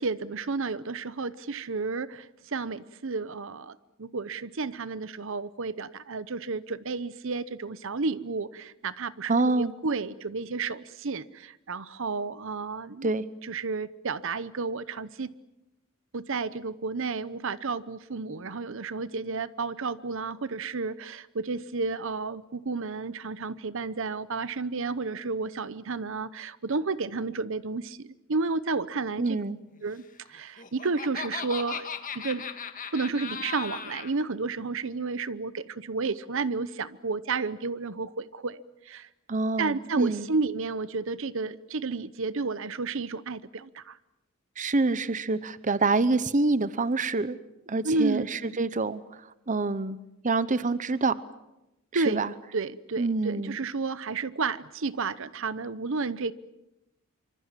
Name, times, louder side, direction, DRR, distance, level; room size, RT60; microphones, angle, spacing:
voice 1, 0.0-13.1 13.4-15.3 16.1-29.4 29.8-30.0 30.3-31.9 32.1-32.4 32.9-39.1 39.6-44.0 47.8-48.6 51.9-52.2 52.5-56.3, right 4 dB, 65° right, 16 dB, 0.8 m, -31 dB
voice 2, 9.3-9.7 13.0-13.3 29.2-29.6 39.3-40.3 44.6-47.4 47.7-49.0 49.5-50.0 50.2-51.2 51.9-52.3 53.0-53.6, right 3 dB, 35° right, 15 dB, 0.8 m, -26 dB
Laughter, 30.4-34.1, left 7 dB, 40° left, 1.7 m, -37 dB
26.0 x 25.5 x 7.5 m, 0.93 s
head